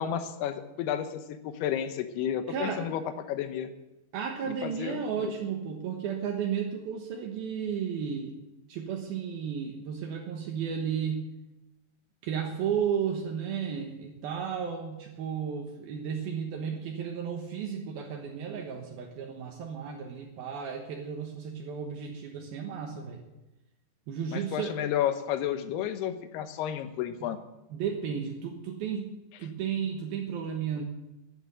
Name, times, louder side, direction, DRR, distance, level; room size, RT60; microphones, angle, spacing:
voice 1, 0.0-3.0 3.3-3.7 4.6-5.3 24.3-27.4, left 10 dB, 80° left, 9 dB, 3.0 m, -32 dB
voice 2, 2.5-2.8 4.1-8.4 8.7-11.3 12.2-23.2 24.1-24.8 27.2-27.3 27.7-30.8, right 7 dB, 70° right, 1 dB, 2.9 m, -33 dB
11.5 x 10.0 x 8.2 m, 0.99 s
omnidirectional pair, 4.7 m